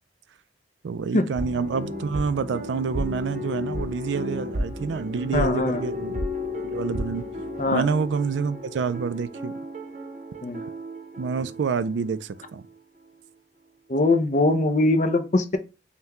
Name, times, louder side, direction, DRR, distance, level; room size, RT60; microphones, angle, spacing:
voice 1, 0.8-6.2 6.6-7.3 7.7-9.6 11.2-12.6, right 5 dB, 85° right, 0.4 m, -27 dB
sound 1, 1.3-12.8 13.0-13.1, left 1 dB, 45° right, 0.7 m, -33 dB
voice 2, 5.3-5.9 7.6-7.9 10.4-10.6 13.9-15.6, left 2 dB, 40° left, 0.5 m, -22 dB
5.6 x 2.2 x 2.9 m
head